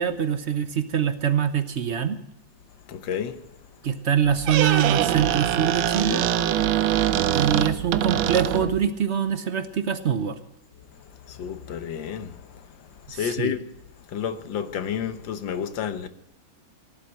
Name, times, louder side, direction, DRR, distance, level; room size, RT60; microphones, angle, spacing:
voice 1, 0.0-2.2 3.8-6.2 7.3-10.4 13.1-13.6, right 8 dB, 50° right, 0.8 m, -24 dB
voice 2, 2.9-3.4 11.3-12.3 13.1-13.6 14.1-16.1, left 8 dB, 75° left, 1.7 m, -30 dB
Squeak, 4.2-8.9, right 11 dB, 85° right, 1.5 m, -23 dB
17.0 x 11.5 x 6.2 m
omnidirectional pair, 2.1 m